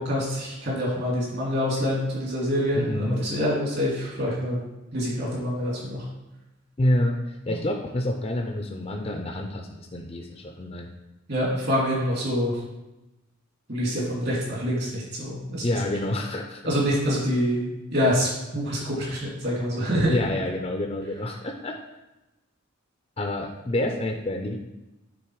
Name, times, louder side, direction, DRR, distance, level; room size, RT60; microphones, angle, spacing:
voice 1, 0.0-4.6 4.9-6.0 7.5-7.6 11.3-12.5 13.7-15.7 16.6-20.2, equal, 50° right, -5 dB, 2.6 m, -26 dB
voice 2, 2.7-3.2 6.8-10.9 15.6-16.6 18.8-18.9 20.1-21.8 23.2-24.6, left 1 dB, 25° left, 2 dB, 0.5 m, -28 dB
9.0 x 3.8 x 4.8 m, 1.0 s
head